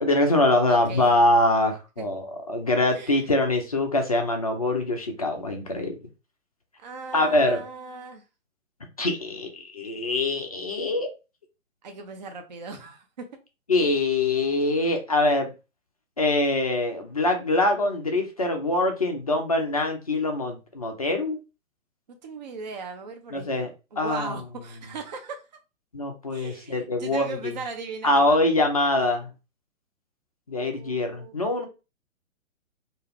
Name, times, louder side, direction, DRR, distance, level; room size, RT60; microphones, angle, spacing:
voice 1, 0.0-5.9 7.1-7.6 9.0-11.1 13.7-15.5 16.2-21.4 23.3-23.7 24.0-24.3 25.9-27.3 28.0-29.3 30.5-31.7, left 2 dB, 30° left, 4 dB, 0.4 m, -24 dB
voice 2, 0.7-1.1 2.0-2.1 2.9-3.2 6.8-8.2 11.8-13.3 22.1-25.4 26.3-28.5 30.6-31.4, right 4 dB, 35° right, 5 dB, 0.4 m, -38 dB
2.4 x 2.3 x 3.1 m, 0.29 s
figure-of-eight pair, 130°, 40 cm